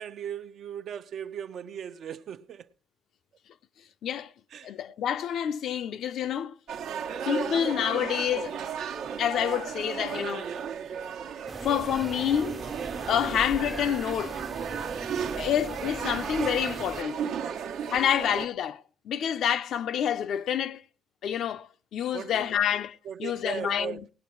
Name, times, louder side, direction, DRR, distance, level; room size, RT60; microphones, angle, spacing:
voice 1, 0.0-2.7 4.5-4.7 15.3-15.6 17.4-17.5 17.8-18.1 19.2-19.4 22.1-22.5 23.0-24.0, right 8 dB, 65° right, 0.6 m, -38 dB
voice 2, 4.6-6.5 7.3-8.6 9.2-10.5 11.6-12.6 13.1-14.4 15.4-17.2 17.9-20.8 21.2-24.1, left 9 dB, 75° left, 0.6 m, -28 dB
sound 1, 6.7-18.5, right 7 dB, 85° right, 1.1 m, -35 dB
sound 2, 11.5-17.0, right 2 dB, 20° right, 0.5 m, -40 dB
18.5 x 8.5 x 4.5 m
cardioid pair, 90°, 0 cm